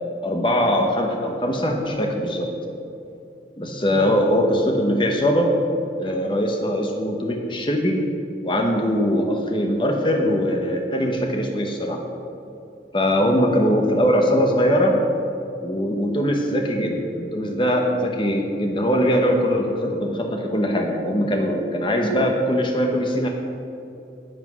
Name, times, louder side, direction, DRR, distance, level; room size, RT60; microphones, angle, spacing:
voice 1, 0.2-2.5 3.6-5.5 6.0-8.0 8.4-12.0 12.9-15.0 15.6-23.3, equal, 30° left, 2 dB, 1.0 m, -21 dB
17.0 x 5.9 x 6.2 m, 2.7 s
head